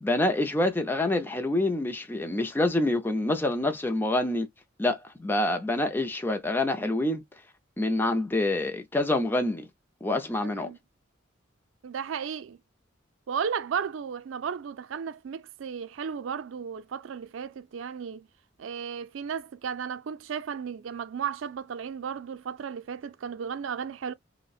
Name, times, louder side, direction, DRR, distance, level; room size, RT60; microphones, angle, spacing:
voice 1, 0.0-4.5 4.8-7.2 7.8-9.7 10.0-10.7, left 1 dB, 10° left, 0.5 m, -26 dB
voice 2, 10.4-10.8 11.8-12.6 13.3-18.3 18.6-24.1, right 7 dB, 90° right, 0.4 m, -34 dB
5.2 x 2.1 x 2.3 m
head